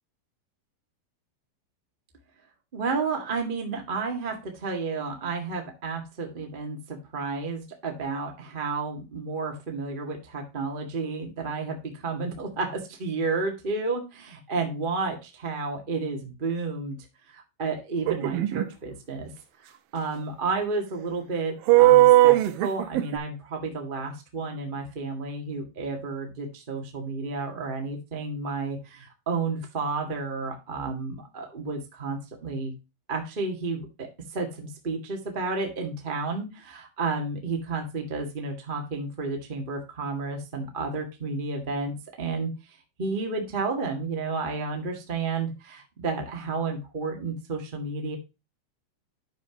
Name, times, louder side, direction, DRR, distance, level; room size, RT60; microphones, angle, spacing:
voice 1, 2.7-17.0 17.3-19.3 19.6-32.7 33.1-42.5 43.0-48.2, right 4 dB, 30° right, 2 dB, 1.0 m, -31 dB
Mumbling old man scream, 18.1-18.6 21.7-23.2, right 16 dB, 80° right, 2.4 m, -17 dB
11.5 x 5.7 x 2.9 m, 0.27 s
omnidirectional pair, 4.2 m